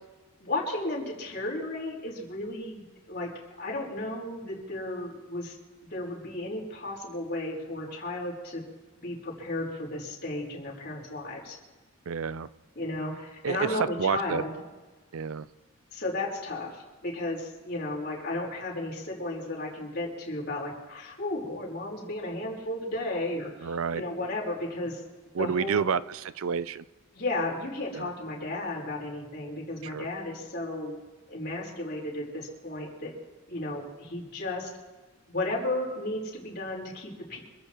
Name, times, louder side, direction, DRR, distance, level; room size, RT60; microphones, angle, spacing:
voice 1, 0.4-3.3 3.6-5.5 5.9-8.6 9.0-11.6 12.8-14.5 15.9-25.0 25.4-25.9 27.1-31.0 31.3-33.1 33.5-34.7 35.3-37.4, left 2 dB, 45° left, -3 dB, 4.3 m, -34 dB
voice 2, 12.1-12.5 13.4-13.7 14.0-14.4 15.1-15.5 23.6-24.0 25.3-26.8 27.9-28.1 29.8-30.1, right 6 dB, 65° right, 16 dB, 0.5 m, -29 dB
26.5 x 14.5 x 3.1 m, 1.2 s
head